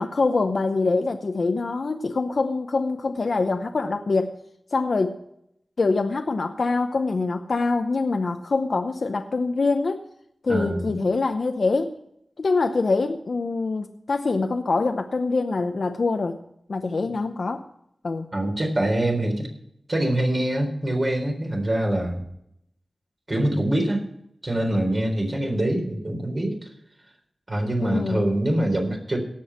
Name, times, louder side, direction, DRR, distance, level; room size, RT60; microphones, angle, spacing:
voice 1, 0.0-4.4 4.7-5.2 5.8-10.0 10.4-12.0 12.4-16.4 16.7-17.6 18.0-18.3 27.8-28.2, left 3 dB, 70° left, 6 dB, 0.8 m, -24 dB
voice 2, 10.5-10.9 18.3-19.5 19.9-22.2 23.3-24.0 24.4-26.7 27.5-29.2, right 1 dB, 45° right, 1 dB, 3.9 m, -24 dB
17.5 x 6.3 x 5.8 m, 0.75 s
wide cardioid pair, 60°, 0 cm